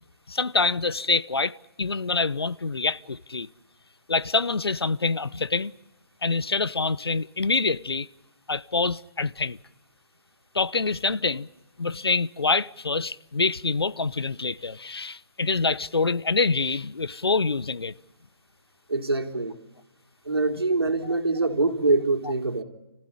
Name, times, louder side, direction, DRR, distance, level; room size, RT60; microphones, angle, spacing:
voice 1, 0.3-3.5 4.1-5.7 6.2-8.1 8.5-9.6 10.5-11.5 11.8-17.9 21.1-21.2, left 4 dB, 80° left, 0.9 m, -26 dB
voice 2, 18.9-19.6 20.3-22.6, right 3 dB, 80° right, 3.5 m, -24 dB
29.5 x 15.0 x 10.0 m
figure-of-eight pair, 155°, 13 cm